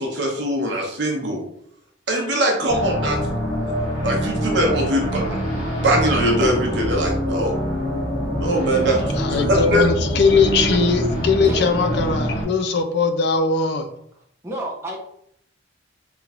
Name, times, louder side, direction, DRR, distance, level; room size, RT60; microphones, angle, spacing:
voice 1, 0.0-1.4 2.1-3.2 4.0-5.4 5.7-7.5 8.3-9.9, right 1 dB, 65° right, 0 dB, 0.9 m, -22 dB
sound 1, 2.7-12.4, equal, 30° left, 1.4 m, -25 dB
voice 2, 9.2-13.9, left 4 dB, 60° left, 7 dB, 0.4 m, -20 dB
voice 3, 14.1-15.0, right 1 dB, 15° right, -2 dB, 0.6 m, -31 dB
3.2 x 3.0 x 2.4 m, 0.70 s
head